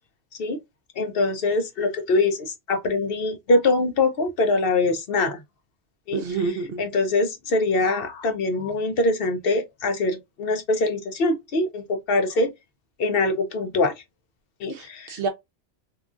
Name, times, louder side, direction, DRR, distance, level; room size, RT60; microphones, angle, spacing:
voice 1, 1.0-5.4 6.1-6.2 6.8-12.5 13.0-13.9 14.6-15.2, left 2 dB, 60° left, 0.8 m, -23 dB
voice 2, 6.1-6.8 14.7-15.3, right 4 dB, 65° right, 0.7 m, -28 dB
3.0 x 2.4 x 2.4 m
omnidirectional pair, 1.2 m